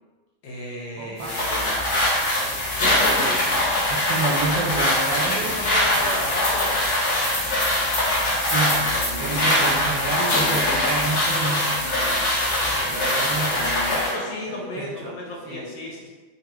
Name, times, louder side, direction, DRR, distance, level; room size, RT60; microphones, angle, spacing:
voice 1, 0.4-1.7 2.8-3.5 5.6-7.0 13.8-16.1, left 2 dB, 80° left, -2 dB, 1.6 m, -34 dB
voice 2, 1.0-1.7 3.9-5.6 5.9-6.2 8.5-12.2 12.6-15.2 15.5-15.7, right 3 dB, 80° right, 0 dB, 1.3 m, -30 dB
sound 1, 1.2-14.2, left 1 dB, 45° left, 1.0 m, -22 dB
3.8 x 3.0 x 3.0 m, 1.3 s
omnidirectional pair, 2.1 m